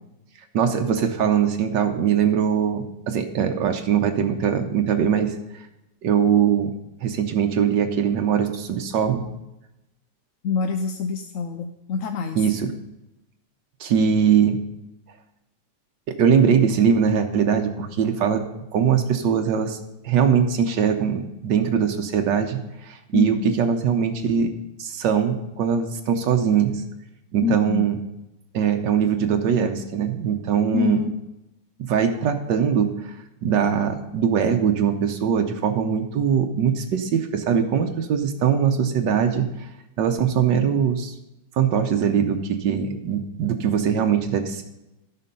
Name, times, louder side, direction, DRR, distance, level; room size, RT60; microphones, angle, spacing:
voice 1, 0.5-5.3 6.0-6.7 7.0-9.2 12.3-12.7 13.8-14.6 16.2-18.4 18.7-19.8 20.0-24.5 24.8-26.8 27.3-28.0 28.5-31.0 31.9-32.9 33.4-39.5 40.0-41.1 41.6-44.6, right 7 dB, 85° right, 5 dB, 1.6 m, -21 dB
voice 2, 10.4-12.4 23.1-23.5 27.4-27.9 30.7-31.1, left 6 dB, 60° left, 6 dB, 0.9 m, -25 dB
12.5 x 6.8 x 5.4 m, 0.92 s
omnidirectional pair, 1.9 m